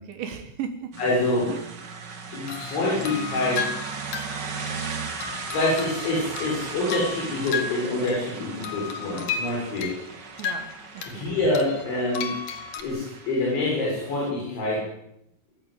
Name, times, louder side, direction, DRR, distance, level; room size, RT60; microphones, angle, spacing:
voice 1, 0.1-0.9 1.5-1.7 10.4-11.4, right 8 dB, 75° right, 8 dB, 3.7 m, -36 dB
sound 1, 0.9-14.3, right 5 dB, 45° right, 1.4 m, -37 dB
voice 2, 1.0-1.5 2.3-3.7 5.5-9.9 11.1-12.3 12.8-14.9, left 2 dB, 80° left, -4 dB, 9.5 m, -26 dB
sound 2, 2.5-8.3 8.6-11.2 11.5-12.8, left 7 dB, 50° left, 3.0 m, -34 dB
28.5 x 14.5 x 8.3 m, 0.76 s
omnidirectional pair, 5.2 m